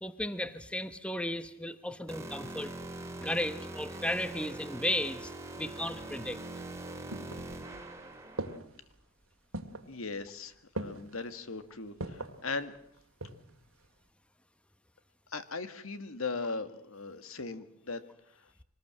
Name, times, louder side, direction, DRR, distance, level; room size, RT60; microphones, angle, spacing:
voice 1, 0.0-2.7 3.2-6.4, left 1 dB, 5° left, 12 dB, 0.9 m, -35 dB
sound 1, 2.1-8.6, right 2 dB, 15° right, 2.3 m, -43 dB
sound 2, 7.1-7.9 8.4-8.9 9.5-9.9 10.8-11.2 12.0-12.4 12.9-13.6 13.8-13.9, right 2 dB, 75° right, 2.2 m, -40 dB
voice 2, 9.9-12.8 15.3-18.0, left 4 dB, 70° left, 12 dB, 1.7 m, -38 dB
25.5 x 19.5 x 7.6 m, 0.72 s
head